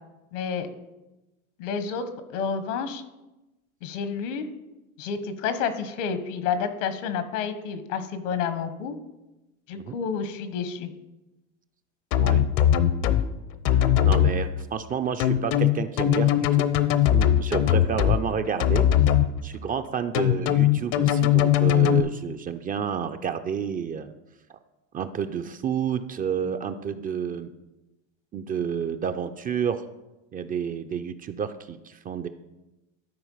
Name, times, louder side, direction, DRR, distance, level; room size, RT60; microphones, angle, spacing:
voice 1, 0.3-0.7 1.6-3.0 3.8-4.5 5.0-8.9 9.7-10.9, left 6 dB, 70° left, 10 dB, 1.4 m, -30 dB
sound 1, 12.1-13.2 13.6-14.3 15.2-18.2 18.6-19.3 20.1-22.0, left 11 dB, 55° left, 0.8 m, -20 dB
voice 2, 13.7-18.9 19.4-24.1 24.5-24.6 24.9-27.5 28.3-29.9 30.3-32.3, right 7 dB, 25° right, 9 dB, 0.4 m, -30 dB
12.5 x 4.5 x 5.6 m, 1.0 s
supercardioid pair, 110°, 38 cm